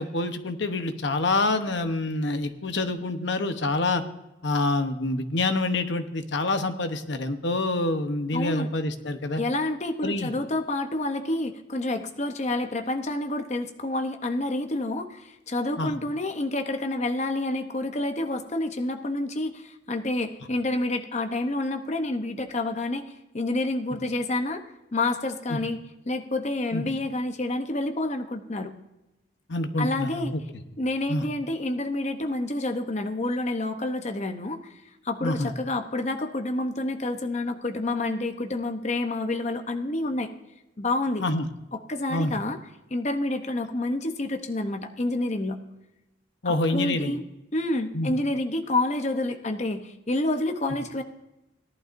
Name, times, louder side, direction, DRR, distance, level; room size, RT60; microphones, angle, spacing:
voice 1, 0.0-4.0 4.4-9.4 10.0-10.3 15.8-15.9 25.5-25.6 26.7-26.8 29.5-30.4 31.1-31.2 35.2-35.5 41.2-41.4 42.1-42.3 46.4-47.1 47.9-48.1, left 2 dB, 60° left, 8 dB, 0.9 m, -27 dB
voice 2, 8.3-8.7 9.4-24.6 24.9-28.8 29.8-30.3 30.8-40.3 40.8-41.2 41.7-42.6 42.9-45.6 46.4-47.2 47.5-51.0, left 2 dB, 35° left, 6 dB, 0.8 m, -28 dB
17.5 x 11.5 x 2.6 m, 0.96 s
head